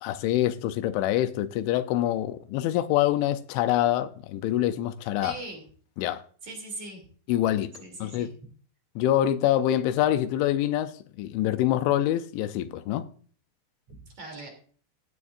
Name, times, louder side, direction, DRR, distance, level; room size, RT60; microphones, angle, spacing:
voice 1, 0.0-5.4 6.0-6.2 7.3-7.7 8.0-8.3 9.0-13.1, left 13 dB, 85° left, 3.1 m, -25 dB
voice 2, 5.2-5.6 6.4-7.0 7.8-8.3 13.9-14.5, right 2 dB, 40° right, 3.9 m, -40 dB
16.0 x 11.0 x 2.6 m
omnidirectional pair, 5.4 m